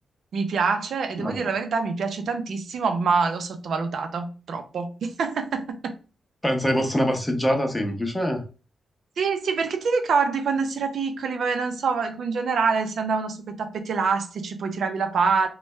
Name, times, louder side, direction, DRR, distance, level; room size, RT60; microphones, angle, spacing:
voice 1, 0.3-5.9 9.2-15.5, right 5 dB, 75° right, 0.6 m, -25 dB
voice 2, 6.4-8.4, equal, 10° left, 0.8 m, -24 dB
3.2 x 2.2 x 3.1 m
wide cardioid pair, 110°, 0 cm